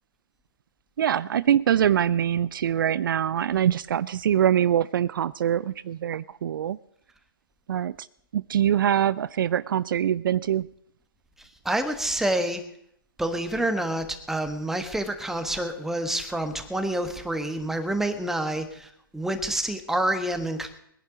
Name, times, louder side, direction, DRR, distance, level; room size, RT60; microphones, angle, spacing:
voice 1, 1.0-6.8 7.7-8.0 8.3-10.7, right 10 dB, 65° right, 19 dB, 0.4 m, -24 dB
voice 2, 11.6-12.6 13.2-20.7, right 1 dB, 5° right, 7 dB, 1.5 m, -28 dB
21.0 x 10.5 x 5.0 m, 0.73 s
hypercardioid pair, 130°, 12 cm